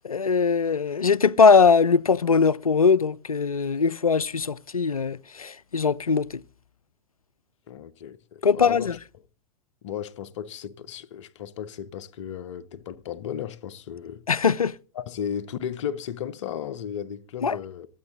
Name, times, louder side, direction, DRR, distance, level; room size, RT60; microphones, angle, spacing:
voice 1, 0.0-6.4 8.4-9.0 14.3-14.7 17.4-17.6, left 5 dB, 85° left, 0.5 m, -21 dB
voice 2, 7.7-8.9 9.8-14.2 14.9-17.9, left 9 dB, 55° left, 1.0 m, -35 dB
25.5 x 9.2 x 2.5 m
figure-of-eight pair, 95°, 18 cm